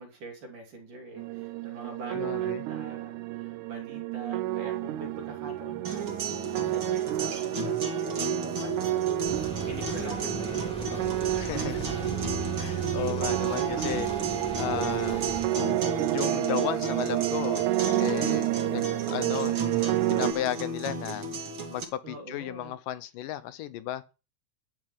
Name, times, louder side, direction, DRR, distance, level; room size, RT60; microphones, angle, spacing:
voice 1, 0.0-6.2 6.6-7.8 8.1-9.3 9.7-12.1 22.0-22.7, right 2 dB, 60° right, 4.4 m, -44 dB
sound 1, 1.2-20.3, right 15 dB, 80° right, 1.8 m, -30 dB
voice 2, 2.1-2.6 11.4-11.9 12.6-14.1 14.6-15.2 16.1-17.7 18.0-19.6 20.1-21.3 21.7-24.0, left 12 dB, 75° left, 2.3 m, -34 dB
sound 2, 5.8-21.8, right 2 dB, 40° right, 2.3 m, -35 dB
sound 3, 9.2-15.5, equal, ahead, 2.2 m, -40 dB
12.0 x 9.5 x 4.8 m
omnidirectional pair, 4.2 m